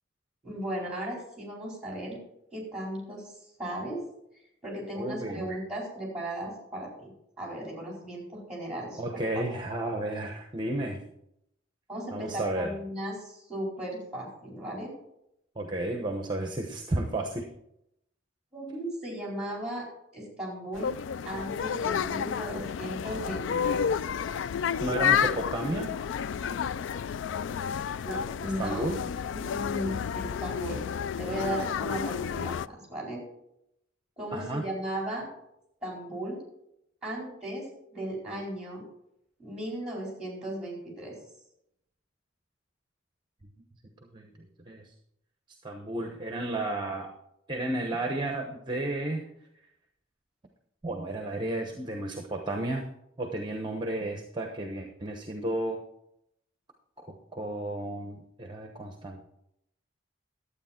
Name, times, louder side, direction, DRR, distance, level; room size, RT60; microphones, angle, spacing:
voice 1, 0.4-2.2 2.5-4.0 4.6-7.1 7.4-9.0 9.3-9.4 11.9-14.9 18.5-19.9 20.1-21.0 21.3-23.8 28.0-28.9 29.3-30.8 31.2-33.2 34.2-35.3 35.8-36.4 37.0-37.6 37.9-38.8 39.4-41.1, right 1 dB, 5° right, -2 dB, 4.6 m, -36 dB
voice 2, 4.9-5.5 9.0-11.0 12.1-12.8 15.6-17.5 24.8-25.9 28.6-29.0 34.3-34.7 44.1-44.9 45.6-47.1 47.5-49.3 50.8-52.9 53.2-55.8 57.0-59.2, right 1 dB, 25° right, 4 dB, 1.0 m, -32 dB
sound 1, 20.7-32.7, left 7 dB, 65° left, 0.3 m, -31 dB
12.0 x 8.6 x 4.4 m, 0.78 s
head